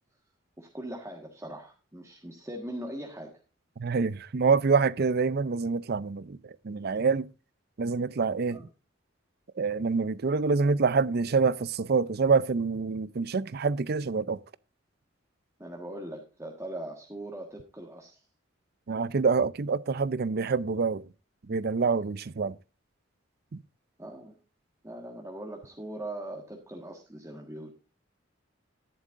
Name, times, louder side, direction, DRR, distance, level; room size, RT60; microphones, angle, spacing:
voice 1, 0.6-3.3 8.5-8.7 15.6-18.2 24.0-24.3 24.8-27.7, right 1 dB, 15° right, 1.5 m, -40 dB
voice 2, 3.8-7.3 7.8-8.6 9.6-14.4 18.9-21.0 21.5-22.6, right 4 dB, 55° right, 0.5 m, -26 dB
13.0 x 11.0 x 2.5 m
head